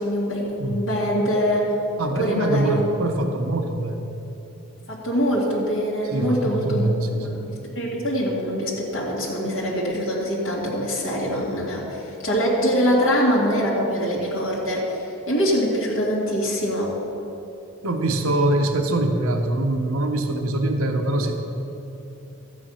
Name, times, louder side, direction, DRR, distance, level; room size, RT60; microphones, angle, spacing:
voice 1, 0.0-1.6 2.0-2.8 4.9-6.9 7.2-15.0 15.3-17.0, equal, 65° left, -5 dB, 2.2 m, -24 dB
voice 2, 2.0-4.0 6.1-7.4 17.8-21.3, right 1 dB, 75° right, 5 dB, 1.1 m, -23 dB
13.5 x 8.6 x 5.6 m, 2.9 s
head